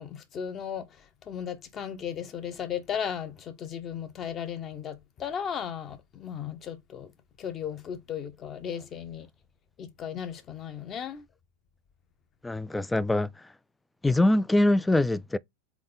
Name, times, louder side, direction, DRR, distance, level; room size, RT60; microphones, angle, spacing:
voice 1, 0.0-7.1 7.4-9.3 9.8-11.2, left 8 dB, 30° left, 0.9 m, -36 dB
voice 2, 12.4-13.3 14.0-15.4, left 1 dB, 5° left, 0.3 m, -23 dB
3.8 x 3.6 x 3.8 m
hypercardioid pair, 115°, 0 cm